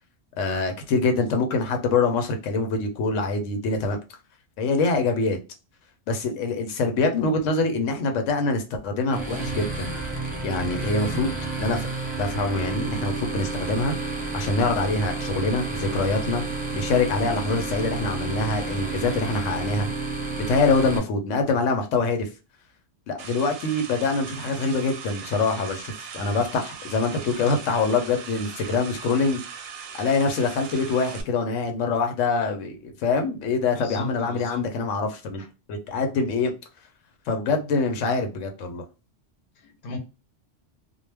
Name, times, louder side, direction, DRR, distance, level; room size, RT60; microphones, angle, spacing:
voice 1, 0.4-4.0 4.6-5.4 6.1-9.9 10.4-11.3 11.6-11.9 12.2-14.0 14.3-16.4 16.7-19.9 20.5-22.3 23.1-29.7 30.0-35.4 35.7-36.5 37.3-38.8, left 3 dB, 85° left, 0.9 m, -24 dB
sound 1, 9.1-21.0, right 3 dB, 10° right, 0.7 m, -30 dB
sound 2, 23.2-31.2, right 7 dB, 65° right, 0.7 m, -39 dB
voice 2, 33.7-34.6 35.4-35.5 39.6-40.0, left 2 dB, 55° left, 0.8 m, -36 dB
2.2 x 2.1 x 3.2 m
omnidirectional pair, 1.3 m